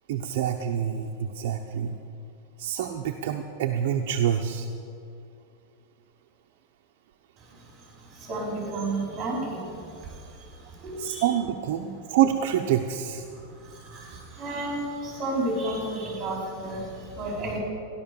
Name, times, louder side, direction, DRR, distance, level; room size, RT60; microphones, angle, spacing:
voice 1, 0.1-1.9 2.6-4.7 11.0-13.2, right 10 dB, 55° right, 3 dB, 0.9 m, -26 dB
voice 2, 7.4-11.3 13.3-17.6, right 2 dB, 25° right, -1 dB, 4.9 m, -33 dB
15.0 x 11.5 x 7.1 m, 2.6 s
supercardioid pair, 160°, 0 cm